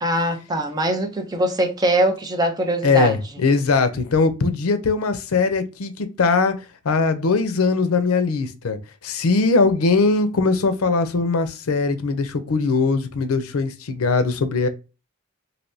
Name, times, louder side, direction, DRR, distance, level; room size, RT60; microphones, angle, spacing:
voice 1, 0.0-3.2, right 1 dB, 20° right, 0.5 m, -22 dB
voice 2, 2.8-6.5 6.8-8.8 9.0-14.7, left 4 dB, 85° left, 0.5 m, -20 dB
3.3 x 2.6 x 2.6 m
head